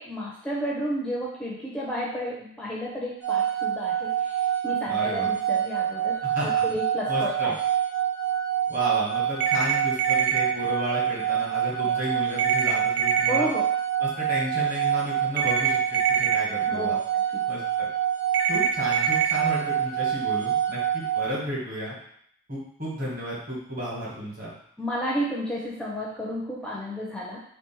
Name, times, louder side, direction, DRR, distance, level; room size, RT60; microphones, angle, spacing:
voice 1, 0.0-6.2 6.6-7.6 11.8-11.9 13.3-13.6 16.7-17.4 24.8-27.4, equal, 5° left, -4 dB, 0.4 m, -32 dB
sound 1, 3.2-21.3, right 10 dB, 80° right, 0.9 m, -26 dB
voice 2, 4.9-5.3 6.2-6.6 7.1-7.5 8.7-13.5 14.0-17.0 17.5-17.9 18.5-21.9 22.5-24.5, equal, 45° right, -6 dB, 1.8 m, -32 dB
sound 2, 9.4-10.4 12.4-13.4 15.4-16.4 18.3-19.3, right 7 dB, 60° right, 0.4 m, -24 dB
3.3 x 3.2 x 4.5 m, 0.68 s
head